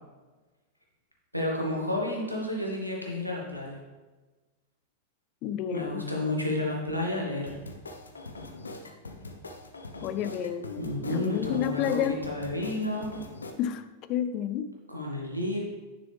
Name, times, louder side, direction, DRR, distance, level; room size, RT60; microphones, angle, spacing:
voice 1, 1.3-3.8 5.7-7.5 10.8-13.1 14.9-15.6, left 1 dB, 90° right, -2 dB, 1.6 m, -31 dB
voice 2, 5.4-6.0 10.0-10.7 11.1-12.2 13.6-14.7, left 9 dB, 40° left, 11 dB, 0.5 m, -30 dB
sound 1, 7.5-13.5, left 2 dB, 75° left, 0.8 m, -42 dB
10.0 x 6.1 x 3.4 m, 1.2 s
figure-of-eight pair, 90°, 0 cm